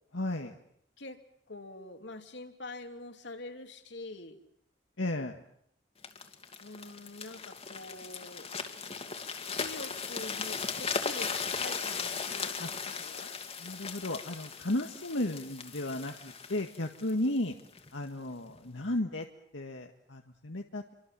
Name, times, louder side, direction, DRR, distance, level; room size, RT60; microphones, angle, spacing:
voice 1, 0.1-0.6 5.0-5.4 12.6-12.7 13.6-17.5 17.9-19.3 19.5-20.9, left 1 dB, 80° left, 3 dB, 1.8 m, -34 dB
voice 2, 1.5-4.4 6.6-8.5 9.5-13.3, left 2 dB, 65° left, 7 dB, 2.9 m, -45 dB
sound 1, 6.0-17.9 18.5-18.7, left 5 dB, 35° left, 2.5 m, -37 dB
28.5 x 25.0 x 7.7 m, 0.72 s
head